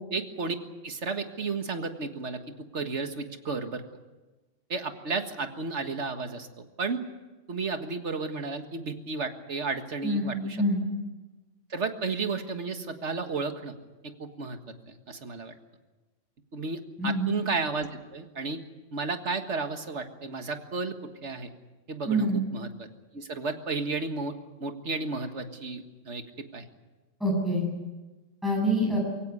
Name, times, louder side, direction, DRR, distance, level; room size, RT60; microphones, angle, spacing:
voice 1, 0.1-0.6 0.8-3.8 4.7-7.0 7.5-10.6 11.7-13.7 14.0-14.6 14.9-15.5 16.5-18.6 18.9-21.5 21.9-22.9 23.1-24.3 24.6-26.7, right 4 dB, 70° right, 7 dB, 2.0 m, -33 dB
voice 2, 10.0-10.8 17.0-17.3 22.1-22.4 27.2-27.7 28.4-29.0, equal, ahead, -2 dB, 7.4 m, -26 dB
23.5 x 16.5 x 9.7 m, 1.2 s
omnidirectional pair, 1.3 m